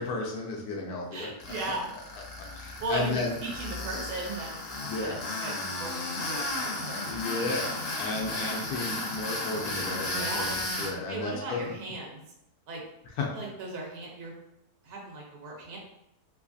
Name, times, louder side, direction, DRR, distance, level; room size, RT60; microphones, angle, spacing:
voice 1, 0.0-1.3 2.5-3.3 4.8-5.2 7.1-11.6 13.2-13.3, left 3 dB, 80° left, -1 dB, 1.1 m, -33 dB
voice 2, 1.1-1.9 2.4-4.6 5.0-5.2 5.4-6.4 6.7-7.1 10.2-10.5 11.1-12.2 12.7-12.8 13.3-14.3 14.8-15.8, right 2 dB, 55° right, -2 dB, 0.7 m, -36 dB
Tools, 1.4-10.9, left 2 dB, 55° left, 0.7 m, -34 dB
3.3 x 3.0 x 2.5 m, 0.81 s
omnidirectional pair, 1.7 m